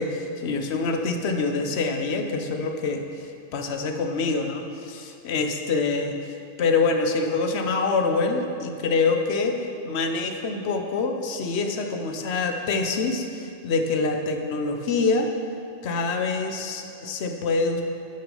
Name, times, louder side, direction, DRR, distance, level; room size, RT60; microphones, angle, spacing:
voice 1, 0.0-15.3 15.8-17.8, left 4 dB, 70° left, 5 dB, 1.0 m, -26 dB
10.0 x 6.1 x 5.3 m, 2.5 s
omnidirectional pair, 1.2 m